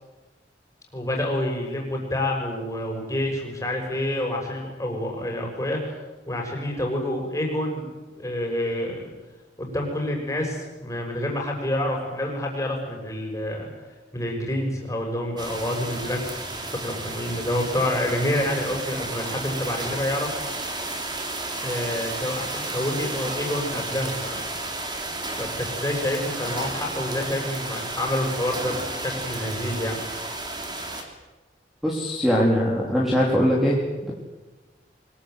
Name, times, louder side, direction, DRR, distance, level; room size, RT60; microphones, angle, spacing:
voice 1, 0.9-5.8 6.3-7.9 8.1-9.1 9.6-13.7 14.1-20.3 21.6-24.6 25.4-30.0, left 1 dB, 20° left, 0 dB, 6.9 m, -28 dB
sound 1, 15.4-31.0, right 2 dB, 25° right, 3.6 m, -32 dB
voice 2, 31.8-33.8, equal, ahead, -3 dB, 3.9 m, -21 dB
24.5 x 22.0 x 9.4 m, 1.2 s
head